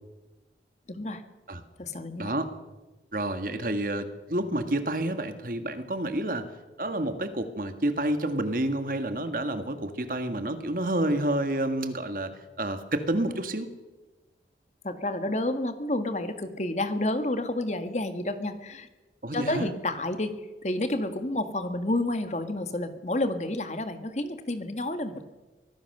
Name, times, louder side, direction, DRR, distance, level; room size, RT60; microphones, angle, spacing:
voice 1, 0.9-1.2 1.8-2.3 14.8-18.9 19.3-20.3 20.6-25.2, left 1 dB, 40° left, 8 dB, 1.6 m, -30 dB
voice 2, 2.2-2.5 3.1-6.5 6.8-13.7 19.2-19.7, right 1 dB, 50° right, 9 dB, 1.7 m, -29 dB
24.0 x 16.5 x 6.7 m, 1.2 s
head